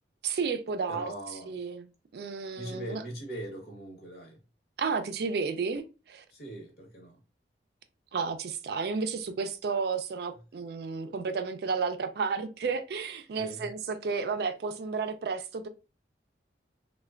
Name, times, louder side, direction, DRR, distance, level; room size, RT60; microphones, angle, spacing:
voice 1, 0.2-1.1 1.5-1.9 2.1-3.0 4.8-6.2 8.1-15.7, right 5 dB, 60° right, 0.4 m, -32 dB
voice 2, 0.9-1.6 2.6-4.4 6.3-7.2 13.4-13.7, right 1 dB, 55° left, 1.0 m, -41 dB
3.2 x 2.2 x 2.3 m
head